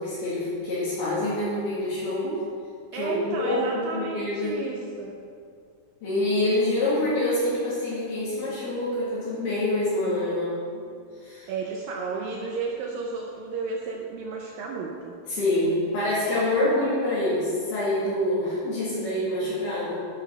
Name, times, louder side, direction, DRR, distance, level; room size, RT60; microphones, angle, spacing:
voice 1, 0.0-2.3 2.9-4.6 6.0-10.8 11.2-11.5 15.3-20.0, left 1 dB, 65° left, -10 dB, 4.0 m, -26 dB
voice 2, 2.9-5.2 11.5-15.2, right 4 dB, 85° right, -1 dB, 2.0 m, -33 dB
13.5 x 6.0 x 4.5 m, 2.2 s
omnidirectional pair, 5.0 m